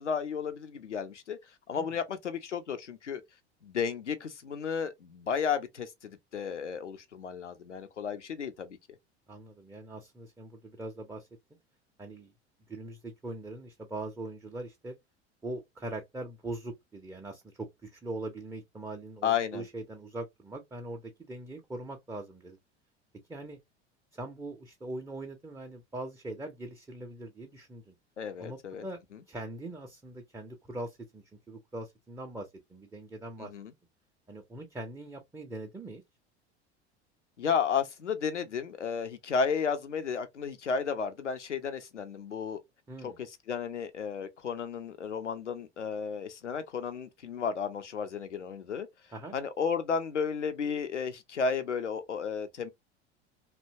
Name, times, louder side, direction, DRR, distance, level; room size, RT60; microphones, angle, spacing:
voice 1, 0.0-1.4 1.7-3.2 3.6-8.8 19.2-19.6 28.2-28.8 33.4-33.7 37.4-42.6 43.0-48.9 49.3-52.7, left 6 dB, 90° left, 0.5 m, -33 dB
voice 2, 9.3-11.3 12.0-12.3 12.7-14.9 15.4-22.6 23.3-23.6 24.1-27.9 28.4-29.0 29.3-33.5 34.3-36.0 42.9-43.2 49.1-49.3, right 2 dB, 10° right, 0.4 m, -41 dB
2.7 x 2.1 x 2.6 m
figure-of-eight pair, 75°, 35 cm